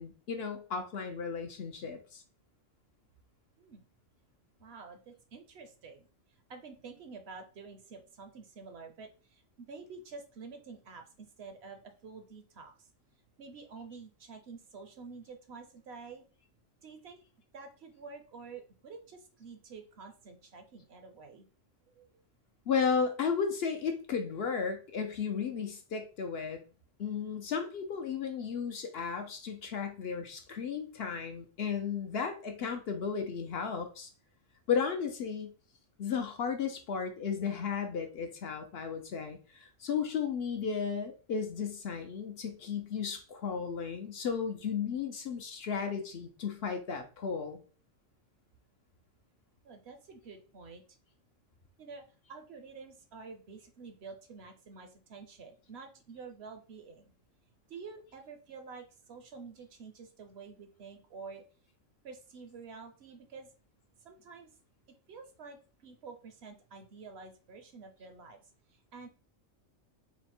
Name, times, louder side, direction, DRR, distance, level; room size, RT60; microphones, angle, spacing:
voice 1, 0.0-2.2 22.7-26.6 27.0-34.1 34.7-35.5 36.0-47.6, left 6 dB, 60° left, 5 dB, 0.8 m, -34 dB
voice 2, 4.6-12.9 13.4-16.2 16.8-17.2 17.5-21.5 21.9-22.2 49.6-50.8 51.8-57.1 57.7-61.4 62.0-63.5 64.0-64.5 65.1-69.1, right 4 dB, 60° right, 6 dB, 0.8 m, -49 dB
4.0 x 2.1 x 4.2 m, 0.37 s
omnidirectional pair, 1.4 m